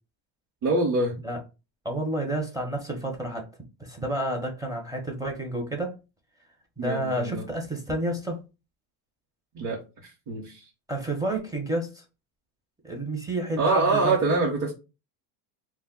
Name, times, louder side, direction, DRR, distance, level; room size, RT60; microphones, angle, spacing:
voice 1, 0.6-1.2 6.8-7.5 9.5-10.6 13.6-14.7, right 3 dB, 45° right, 0.9 m, -25 dB
voice 2, 1.8-3.5 3.8-5.9 6.8-8.4 10.9-12.0 12.8-14.2, right 1 dB, 10° right, 0.5 m, -30 dB
2.2 x 2.1 x 3.6 m
cardioid pair, 115°, 44 cm